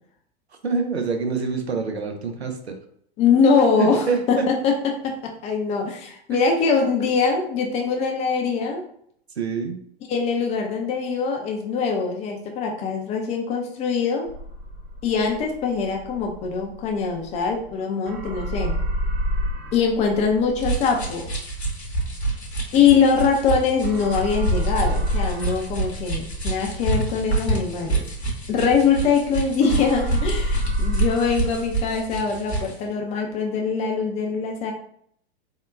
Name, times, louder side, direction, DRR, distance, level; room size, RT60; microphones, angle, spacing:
voice 1, 0.6-2.7 3.8-4.4 6.3-6.4 9.4-9.8, right 5 dB, 85° right, 5 dB, 0.5 m, -26 dB
voice 2, 3.2-8.8 10.1-14.3 15.0-18.8 19.7-21.4 22.7-28.1 28.5-34.7, left 5 dB, 20° left, 2 dB, 0.4 m, -22 dB
sound 1, 14.3-17.8 18.1-23.5 23.8-29.3 29.6-32.0, equal, 35° right, 0.5 m, -29 dB
sound 2, 20.6-32.8, right 3 dB, 85° left, 0.8 m, -28 dB
3.7 x 2.1 x 2.3 m, 0.66 s
figure-of-eight pair, 95°, 32 cm